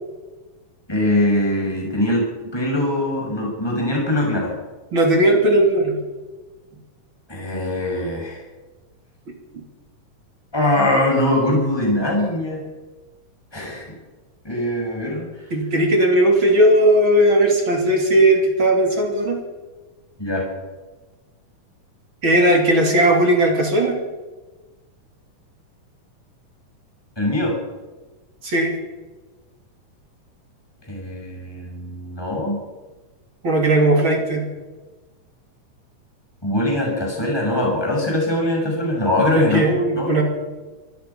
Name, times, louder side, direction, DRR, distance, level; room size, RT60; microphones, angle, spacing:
voice 1, 0.9-2.3 2.5-4.5 7.3-8.4 10.5-12.7 13.5-13.9 14.4-15.3 20.2-20.5 27.2-27.6 30.9-32.6 36.4-39.7 40.0-40.1, left 1 dB, 5° left, -1 dB, 6.4 m, -22 dB
voice 2, 4.9-6.0 15.5-19.4 22.2-24.0 28.4-28.7 33.4-34.5 39.4-40.2, right 1 dB, 35° right, 2 dB, 3.6 m, -17 dB
24.5 x 18.5 x 5.8 m, 1.2 s
omnidirectional pair, 3.9 m